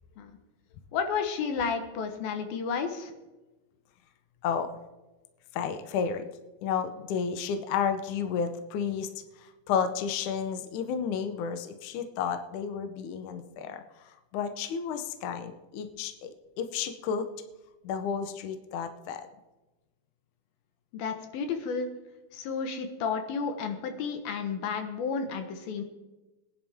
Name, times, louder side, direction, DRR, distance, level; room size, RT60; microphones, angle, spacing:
voice 1, 0.9-3.1 20.9-21.9 22.3-25.8, left 5 dB, 85° left, 6 dB, 3.1 m, -32 dB
voice 2, 5.5-6.2 6.6-9.1 9.4-17.3 17.8-19.3, left 7 dB, 70° left, 8 dB, 2.1 m, -32 dB
21.5 x 10.5 x 3.6 m, 1.1 s
omnidirectional pair, 4.1 m